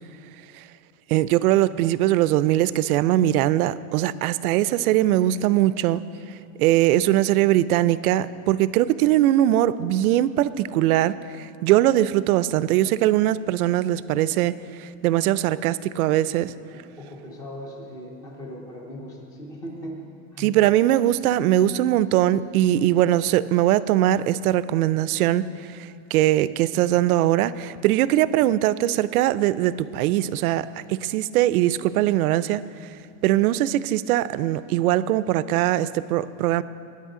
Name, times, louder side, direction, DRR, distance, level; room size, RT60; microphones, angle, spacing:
voice 1, 1.1-6.0 6.6-14.5 15.0-16.5 20.4-25.4 26.1-32.6 33.2-36.6, right 13 dB, 80° right, 17 dB, 0.6 m, -21 dB
voice 2, 16.7-20.0 20.3-20.6, equal, 10° left, 1 dB, 0.4 m, -38 dB
21.5 x 9.9 x 3.7 m, 2.5 s
supercardioid pair, 175°, 44 cm